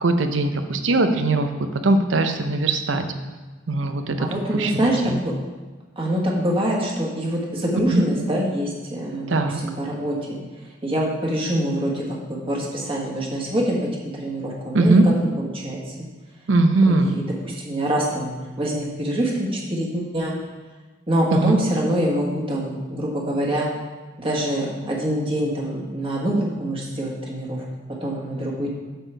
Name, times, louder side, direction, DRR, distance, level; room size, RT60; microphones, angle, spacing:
voice 1, 0.0-3.0 3.7-4.2 4.5-5.2 7.9-8.0 9.3-9.6 14.7-15.1 16.5-17.2 21.3-21.6, right 2 dB, 70° right, 7 dB, 0.6 m, -20 dB
voice 2, 4.2-5.3 6.0-10.4 10.8-15.0 15.4-15.9 16.9-20.3 21.1-23.7 24.2-27.6 28.0-28.7, right 1 dB, 30° right, -3 dB, 1.4 m, -25 dB
7.8 x 6.4 x 3.4 m, 1.3 s
head